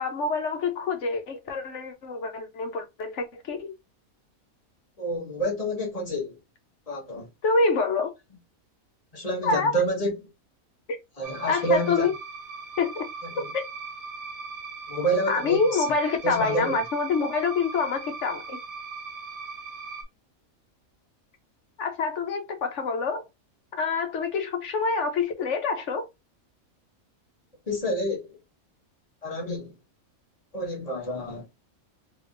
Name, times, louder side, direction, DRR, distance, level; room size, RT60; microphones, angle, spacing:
voice 1, 0.0-3.7 7.4-8.1 9.4-9.7 10.9-11.0 11.5-12.1 12.8-13.1 13.5-13.6 15.3-18.6 21.8-23.3 23.7-26.1, left 4 dB, 60° left, 1.1 m, -26 dB
voice 2, 5.0-6.4 6.9-7.3 9.1-10.3 11.2-12.1 13.3-13.4 14.9-15.8 16.2-16.8 27.7-28.4 29.2-29.7 30.5-31.5, right 1 dB, 30° left, 0.8 m, -28 dB
sound 1, 11.2-20.0, right 4 dB, 85° right, 1.3 m, -39 dB
3.4 x 3.3 x 2.5 m
omnidirectional pair, 1.5 m